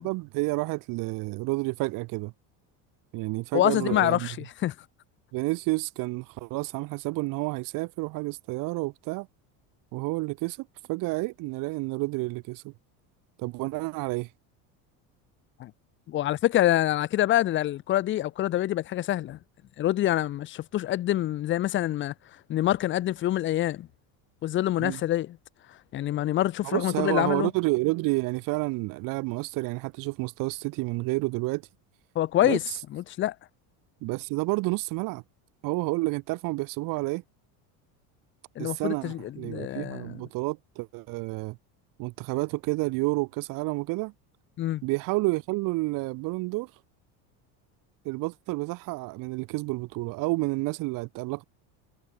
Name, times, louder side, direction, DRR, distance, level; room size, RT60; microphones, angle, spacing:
voice 1, 0.0-2.3 3.1-4.3 5.3-9.3 9.9-12.7 13.4-14.3 24.8-25.0 26.6-31.6 32.4-32.8 34.0-35.2 35.6-37.2 38.6-41.6 42.0-44.1 44.8-46.7 48.0-51.4, right 23 dB, 55° right, 1.4 m, -30 dB
voice 2, 3.5-4.7 15.6-15.7 16.1-19.4 19.8-22.1 22.5-23.9 24.4-25.4 25.9-27.5 32.2-32.6 32.9-33.3 38.6-40.2 44.6-44.8, left 13 dB, 30° left, 0.6 m, -26 dB
cardioid pair, 155°, 40 cm